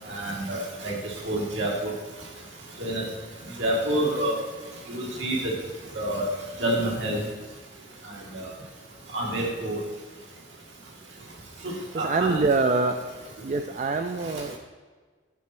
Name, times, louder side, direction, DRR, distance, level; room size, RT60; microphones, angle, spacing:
voice 1, 0.1-0.9 1.3-1.9 2.8-3.0 3.6-4.4 4.9-5.4 5.9-6.3 6.6-7.2 8.3-8.5 9.1-9.8 12.0-12.4, right 1 dB, 85° right, -3 dB, 2.3 m, -27 dB
voice 2, 11.9-13.0 13.4-14.6, right 3 dB, 40° right, 6 dB, 0.4 m, -24 dB
10.5 x 4.3 x 6.0 m, 1.5 s
head